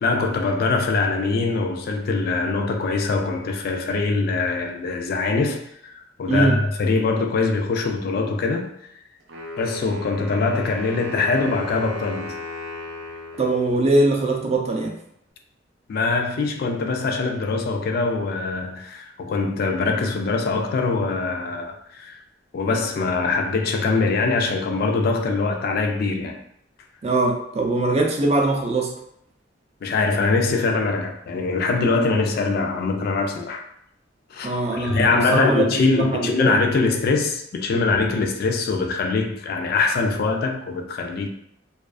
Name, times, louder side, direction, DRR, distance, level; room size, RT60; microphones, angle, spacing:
voice 1, 0.0-5.9 6.2-8.7 9.6-12.4 15.9-22.2 22.5-26.4 29.8-33.7 34.3-41.3, left 3 dB, 55° left, 0.3 m, -23 dB
voice 2, 6.3-6.6 13.4-14.9 27.0-28.9 34.4-35.7 36.0-36.5, right 2 dB, 35° right, 0.4 m, -21 dB
Wind instrument woodwind instrument, 9.3-14.3, left 2 dB, 80° right, 0.6 m, -36 dB
2.3 x 2.3 x 2.3 m
head